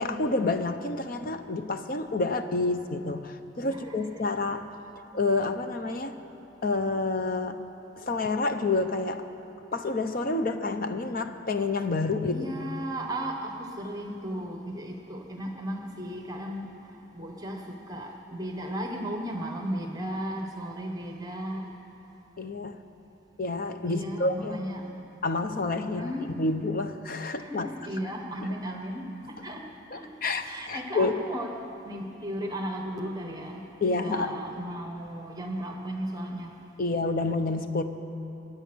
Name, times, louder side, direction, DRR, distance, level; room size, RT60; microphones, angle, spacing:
voice 1, 0.0-4.7 5.1-6.2 6.6-7.6 8.0-9.3 9.7-12.5 22.4-22.8 23.4-24.6 25.2-27.7 28.4-28.5 29.9-31.2 33.8-34.4 36.8-37.8, left 3 dB, 50° left, 8 dB, 0.8 m, -29 dB
voice 2, 12.3-21.7 23.8-24.9 25.8-26.3 27.4-30.1 30.4-31.5 31.8-36.5, right 1 dB, 20° right, 2 dB, 1.2 m, -35 dB
24.0 x 9.6 x 6.3 m, 2.9 s
head